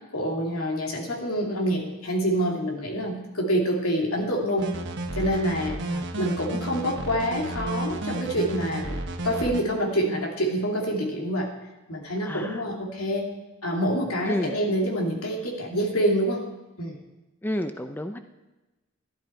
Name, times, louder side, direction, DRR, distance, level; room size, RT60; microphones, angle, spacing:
voice 1, 0.1-4.7 5.1-5.8 6.2-9.0 9.2-11.5 11.9-13.3 13.6-16.4 16.8-17.0, equal, 90° left, 0 dB, 2.6 m, -26 dB
sound 1, 4.6-9.6, right 2 dB, 55° right, 1.1 m, -32 dB
voice 2, 5.7-6.0 12.2-12.6 14.3-14.6 17.4-18.2, equal, 10° left, 8 dB, 0.5 m, -31 dB
12.5 x 12.0 x 4.5 m, 1.1 s
head